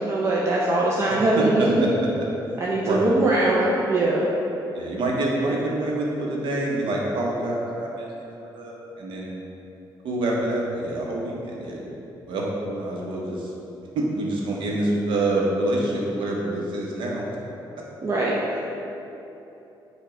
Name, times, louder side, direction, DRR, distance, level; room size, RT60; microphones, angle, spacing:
voice 1, 0.0-2.1 2.6-4.3 18.0-18.4, right 2 dB, 35° right, -4 dB, 0.4 m, -21 dB
voice 2, 1.4-1.7 2.8-3.0 4.7-8.2 8.5-9.4 10.0-11.9 12.3-13.5 13.9-17.2, right 2 dB, 75° right, -2 dB, 0.7 m, -26 dB
4.8 x 2.2 x 4.7 m, 3.0 s
cardioid pair, 130°, 8 cm